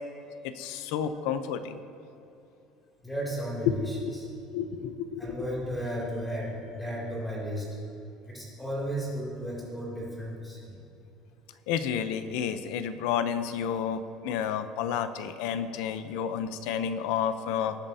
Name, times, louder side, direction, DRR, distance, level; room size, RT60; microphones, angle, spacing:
voice 1, 0.4-1.8 4.0-4.1 4.5-5.2 11.7-17.8, left 8 dB, 75° left, 11 dB, 0.6 m, -31 dB
voice 2, 3.0-4.2 5.2-7.7 8.3-10.7, equal, 5° left, -6 dB, 2.7 m, -34 dB
19.0 x 8.9 x 2.8 m, 2.8 s
cardioid pair, 175°, 0 cm